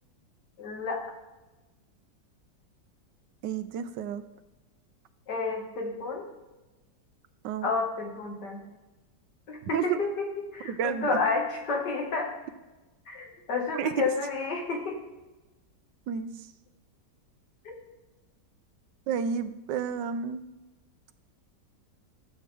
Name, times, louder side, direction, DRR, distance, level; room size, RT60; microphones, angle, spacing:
voice 1, 0.6-1.0 5.3-6.2 7.6-8.6 9.5-12.3 13.1-15.0 17.6-17.7, left 4 dB, 70° left, 0 dB, 2.3 m, -30 dB
voice 2, 3.4-4.2 7.4-7.7 9.7-10.0 10.6-11.2 13.8-14.1 16.1-16.5 19.1-20.4, right 8 dB, 80° right, 11 dB, 1.3 m, -31 dB
12.5 x 7.7 x 3.4 m, 1.1 s
omnidirectional pair, 1.9 m